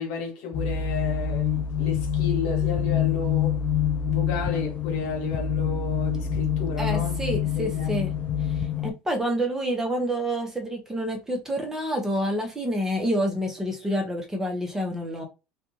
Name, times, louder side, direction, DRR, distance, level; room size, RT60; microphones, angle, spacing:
voice 1, 0.0-3.6 4.1-7.2 7.5-7.9, left 4 dB, 75° left, 1.1 m, -33 dB
sound 1, 0.5-8.9, left 8 dB, 35° left, 0.4 m, -26 dB
voice 2, 6.8-8.1 8.8-15.3, equal, 10° right, 0.8 m, -28 dB
2.5 x 2.3 x 3.0 m
supercardioid pair, 105°, 4 cm